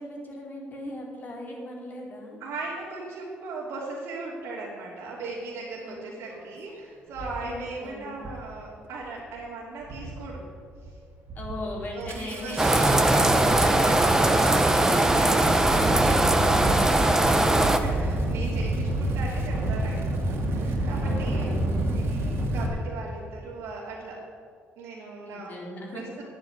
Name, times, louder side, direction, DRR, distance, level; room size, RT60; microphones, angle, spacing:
voice 1, 0.0-2.4 5.9-6.0 7.4-8.2 11.3-13.4 21.0-21.9 25.2-26.3, left 1 dB, 45° left, -2 dB, 4.3 m, -38 dB
voice 2, 2.4-10.4 10.9-11.0 11.9-21.5 21.8-24.2 24.8-25.5 25.9-26.3, right 3 dB, 80° right, -6 dB, 2.9 m, -38 dB
Engine starting, 6.3-6.4 7.1-7.5 8.2-8.5 8.8-9.4 9.8-10.4 10.7-11.0 11.3-22.7, right 1 dB, 65° right, 2.6 m, -29 dB
sound 1, 12.6-17.8, right 1 dB, 10° right, 1.3 m, -20 dB
10.5 x 9.3 x 9.4 m, 2.2 s
cardioid pair, 80°, 4 cm